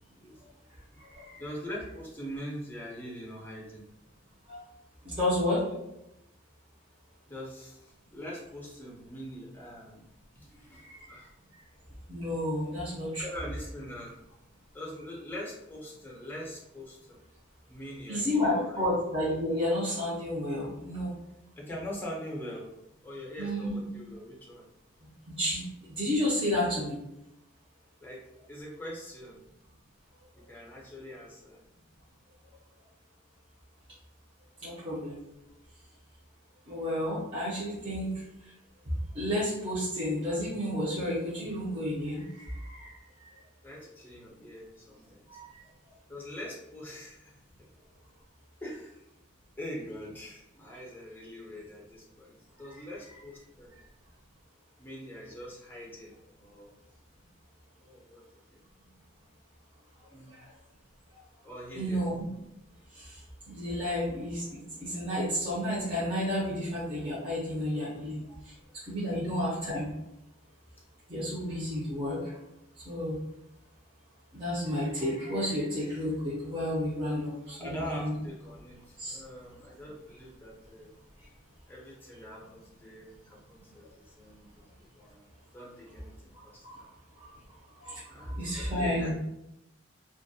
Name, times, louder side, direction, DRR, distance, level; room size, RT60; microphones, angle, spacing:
voice 1, 0.1-1.0 1.4-3.8 7.3-10.1 10.3-11.3 13.2-14.2 14.7-17.2 17.7-18.9 21.6-22.7 23.0-24.6 28.0-28.2 28.5-29.4 30.3-31.6 34.7-34.8 43.6-45.4 46.1-47.3 48.6-49.0 49.6-53.7 54.8-56.7 57.8-58.2 58.5-58.6 60.1-60.4 61.4-62.0 69.1-69.2 77.6-80.9 81.7-84.5 84.9-86.9 88.1-89.1, equal, 10° left, -4 dB, 0.5 m, -43 dB
voice 2, 5.1-5.6 10.8-10.9 12.1-13.2 18.1-21.1 23.4-23.8 25.3-25.6 26.0-27.0 34.6-35.2 36.7-38.1 39.1-43.0 45.3-45.5 52.7-52.8 61.7-62.2 62.9-63.0 63.5-64.4 64.8-68.2 68.9-69.9 71.1-72.3 72.9-73.2 74.3-78.1 79.0-79.2 86.6-86.8 87.8-88.0 88.4-89.1, left 1 dB, 30° right, -9 dB, 0.6 m, -31 dB
2.3 x 2.1 x 2.6 m, 0.87 s
head